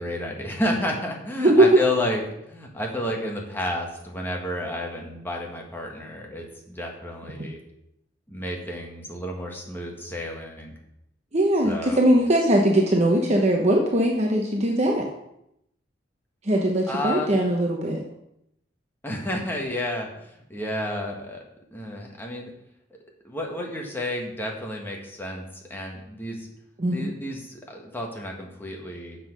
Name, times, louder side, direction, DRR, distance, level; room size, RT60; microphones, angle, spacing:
voice 1, 0.0-7.6 8.3-10.7 11.6-12.0 16.9-17.4 19.0-21.4 21.7-22.5 23.2-26.5 26.9-29.2, left 1 dB, 10° left, 0 dB, 1.6 m, -31 dB
voice 2, 11.3-15.0 16.4-18.0 26.8-27.1, right 1 dB, 40° right, 0 dB, 1.0 m, -20 dB
7.4 x 6.1 x 6.1 m, 0.79 s
head